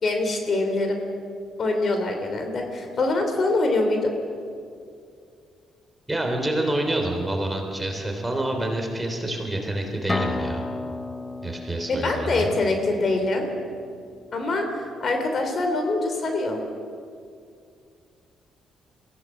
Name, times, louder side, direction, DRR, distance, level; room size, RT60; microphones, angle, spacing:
voice 1, 0.0-1.0 1.6-4.2 11.9-13.5 14.3-16.6, left 2 dB, 50° left, 5 dB, 3.2 m, -24 dB
voice 2, 6.1-10.6 11.4-12.5, right 1 dB, 10° right, 2 dB, 3.6 m, -27 dB
sound 1, 10.1-13.8, left 3 dB, 25° left, 0.9 m, -33 dB
22.5 x 16.0 x 7.4 m, 2.3 s
cardioid pair, 90°, 0 cm